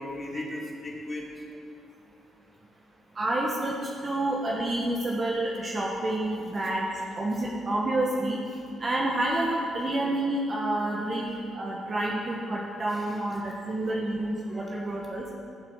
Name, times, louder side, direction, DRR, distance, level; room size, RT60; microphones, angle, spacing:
voice 1, 0.0-1.4 4.1-4.2 12.9-13.4 13.7-13.9 14.5-14.6 15.0-15.2, left 1 dB, 30° left, -1 dB, 2.4 m, -38 dB
voice 2, 3.1-6.8 7.1-8.4 8.8-15.2, right 1 dB, 35° right, -3 dB, 1.4 m, -29 dB
15.0 x 7.4 x 4.8 m, 2.5 s
cardioid pair, 90°, 0 cm